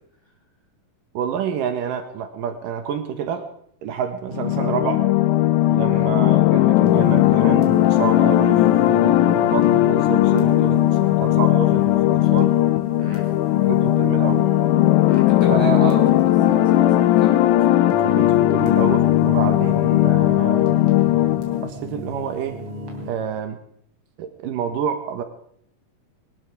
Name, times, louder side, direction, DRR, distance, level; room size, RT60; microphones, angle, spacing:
voice 1, 1.1-3.4 3.8-5.1 5.7-12.6 13.7-14.5 15.5-16.1 17.6-20.8 21.6-22.6 23.0-23.6 24.2-25.2, right 8 dB, 80° right, 8 dB, 2.8 m, -28 dB
sound 1, 4.3-21.7, left 15 dB, 75° left, 2.1 m, -17 dB
sound 2, 6.8-23.1, right 3 dB, 40° right, 3.6 m, -34 dB
voice 2, 15.1-16.8 17.2-17.4, equal, 5° left, -4 dB, 5.7 m, -34 dB
21.0 x 12.5 x 4.7 m, 0.66 s
omnidirectional pair, 3.9 m